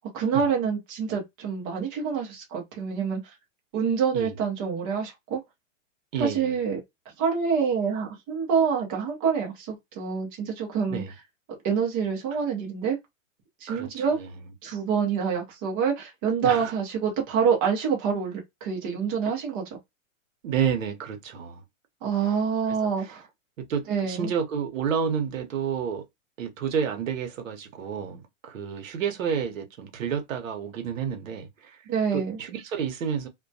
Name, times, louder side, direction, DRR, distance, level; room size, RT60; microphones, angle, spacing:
voice 1, 0.1-3.2 3.7-5.4 6.2-6.8 7.2-11.0 11.6-13.0 13.6-14.2 14.6-19.7 22.0-23.3 23.9-24.3 31.9-32.4, right 6 dB, 20° right, 0.5 m, -26 dB
voice 2, 6.1-6.5 10.9-11.1 13.7-14.3 16.4-16.7 20.4-21.6 22.7-22.8 23.0-23.1 23.7-26.0 26.4-31.8 32.1-33.3, right 7 dB, 75° right, 0.8 m, -30 dB
2.2 x 2.2 x 2.6 m
hypercardioid pair, 160°, 40 cm